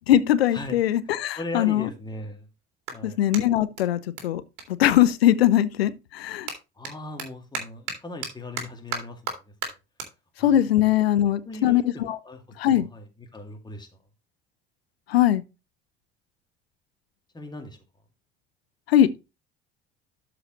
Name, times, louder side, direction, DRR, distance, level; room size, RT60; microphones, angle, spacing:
voice 1, 0.1-1.9 3.0-4.4 4.8-6.5 10.4-12.2 12.6-12.9 15.1-15.4 18.9-19.1, left 12 dB, 70° left, 0.8 m, -21 dB
voice 2, 1.3-2.5 2.9-3.2 6.8-9.3 10.4-10.6 11.5-13.1 13.3-13.9 17.3-17.8, left 2 dB, 15° left, 2.2 m, -38 dB
Clapping, 2.0-5.6 5.9-12.5, right 6 dB, 60° right, 2.4 m, -39 dB
12.5 x 5.0 x 3.0 m
figure-of-eight pair, 60°, 31 cm